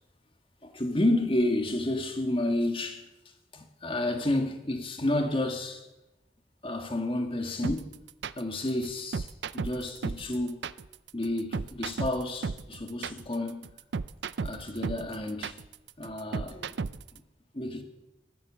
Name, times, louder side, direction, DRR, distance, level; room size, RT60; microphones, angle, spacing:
voice 1, 0.6-3.1 3.5-5.8 6.6-7.9 8.4-10.7 11.1-13.7 14.4-15.6 16.0-16.8 17.1-17.2 17.5-17.8, left 1 dB, 30° left, 1.7 m, -30 dB
sound 1, 7.6-17.2, right 4 dB, 75° right, 0.5 m, -34 dB
14.5 x 13.5 x 7.4 m
head